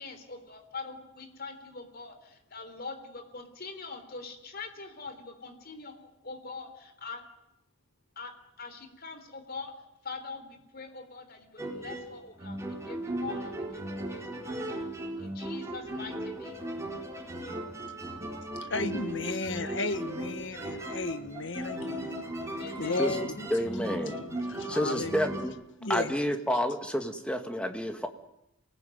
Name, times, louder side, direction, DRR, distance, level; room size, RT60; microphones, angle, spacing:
voice 1, 0.0-7.2 8.2-8.3 8.6-9.7 10.0-14.6 15.2-16.6 22.6-23.1, left 4 dB, 50° left, 7 dB, 3.9 m, -43 dB
sound 1, 11.6-25.4, right 1 dB, 15° right, 4.3 m, -37 dB
voice 2, 18.6-22.2 22.8-25.2 25.8-26.2, left 3 dB, 70° left, 10 dB, 1.6 m, -34 dB
voice 3, 23.0-24.2 24.7-25.5 25.9-28.1, equal, 5° left, 6 dB, 2.2 m, -30 dB
28.0 x 19.0 x 9.4 m, 0.85 s
head